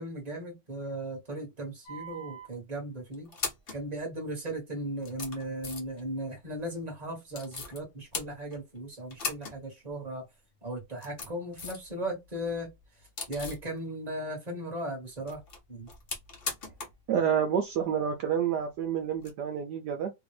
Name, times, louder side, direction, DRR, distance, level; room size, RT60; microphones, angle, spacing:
voice 1, 0.0-3.3 3.7-10.2 10.6-12.7 13.3-15.4 15.7-15.9, right 1 dB, 25° right, 1.2 m, -37 dB
sound 1, 1.9-2.5 3.1-3.8 4.6-4.7 5.0-6.0 7.3-7.8 8.1-8.8 9.1-9.6 9.9-10.0 10.8-11.9 12.2-13.7 15.1-17.0 17.3-17.4 19.2-19.3, left 4 dB, 60° left, 0.6 m, -39 dB
voice 2, 17.1-20.1, right 8 dB, 75° right, 0.9 m, -28 dB
3.3 x 2.5 x 3.2 m
omnidirectional pair, 2.4 m